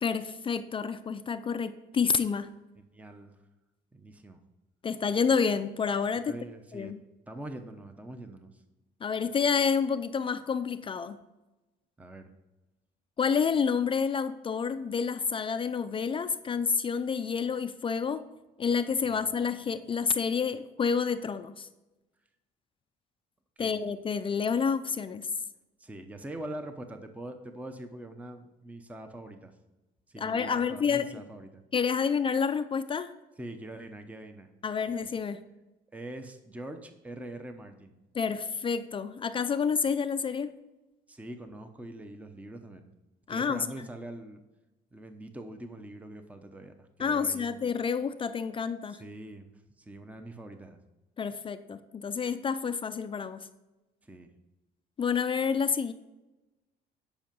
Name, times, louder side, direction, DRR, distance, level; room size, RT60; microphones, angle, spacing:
voice 1, 0.0-2.5 4.8-6.4 6.7-7.0 9.0-11.2 13.2-18.2 18.6-21.7 23.6-25.3 30.2-31.2 31.7-33.1 34.6-35.4 38.1-40.5 43.3-43.7 47.0-49.0 51.2-53.5 55.0-55.9, left 6 dB, 30° left, 10 dB, 0.5 m, -29 dB
voice 2, 2.9-3.4 3.9-4.4 6.3-6.9 7.3-8.6 12.0-12.3 19.0-19.3 23.6-23.7 25.8-29.5 30.1-31.6 33.4-34.5 35.9-37.9 41.1-42.9 43.3-44.4 44.9-47.8 48.9-49.5 49.8-50.8 54.0-54.3, right 1 dB, 10° right, 7 dB, 0.8 m, -43 dB
10.0 x 5.7 x 5.3 m, 1.0 s
cardioid pair, 110°, 17 cm